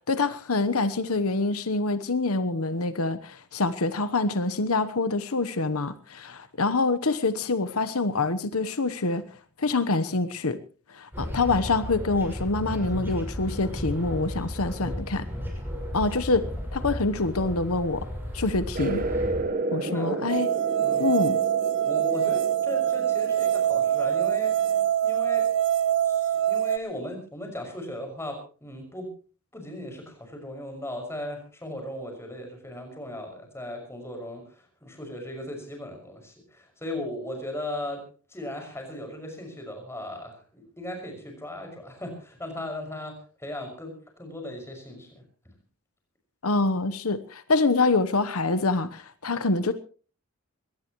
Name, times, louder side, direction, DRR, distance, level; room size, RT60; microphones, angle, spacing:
voice 1, 0.1-9.2 9.6-10.6 10.9-15.3 15.9-16.5 16.7-18.1 18.3-19.1 19.7-20.5 21.0-21.4 46.4-49.7, left 3 dB, 90° left, 12 dB, 1.1 m, -26 dB
sound 1, 11.1-19.4, equal, 10° right, 5.9 m, -34 dB
sound 2, 18.7-24.9, right 2 dB, 40° right, 1.3 m, -33 dB
voice 2, 19.8-20.5 20.8-21.1 21.8-25.5 26.0-29.1 29.5-38.0 38.3-45.2, left 1 dB, 10° left, 3 dB, 6.0 m, -37 dB
sound 3, 20.3-26.8, right 10 dB, 60° right, 0.8 m, -24 dB
22.0 x 18.5 x 3.1 m, 0.39 s
head